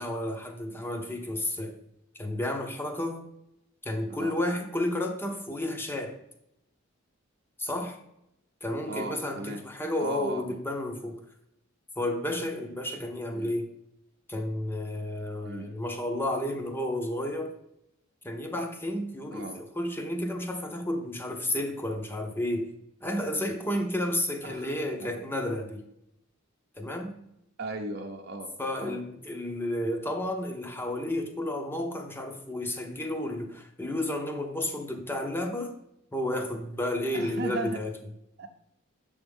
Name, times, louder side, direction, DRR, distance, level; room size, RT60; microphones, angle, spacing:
voice 1, 0.0-1.8 2.2-3.3 3.8-6.1 7.6-8.0 8.6-11.2 12.0-13.7 14.3-17.5 18.2-22.7 23.0-25.9 26.8-27.1 28.6-35.7 36.1-38.0, left 1 dB, 10° left, 0.8 m, -32 dB
voice 2, 8.9-9.6 10.0-10.6 13.3-13.6 15.4-15.7 19.3-19.6 24.4-24.7 25.0-25.1 27.6-28.5 28.8-29.0 37.1-37.8 38.4-38.5, right 2 dB, 50° right, 0.8 m, -37 dB
7.5 x 3.5 x 5.3 m
head